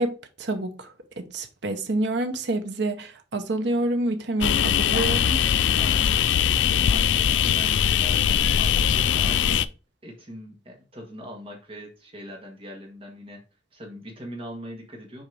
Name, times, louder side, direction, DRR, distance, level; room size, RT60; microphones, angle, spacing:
voice 1, 0.0-5.8, right 2 dB, 65° right, 0.9 m, -28 dB
sound 1, 4.4-9.7, left 8 dB, 80° left, 0.4 m, -21 dB
voice 2, 5.7-6.3 6.9-9.7 10.0-13.4 13.7-15.2, equal, 30° right, 1.7 m, -41 dB
6.4 x 4.4 x 3.4 m
head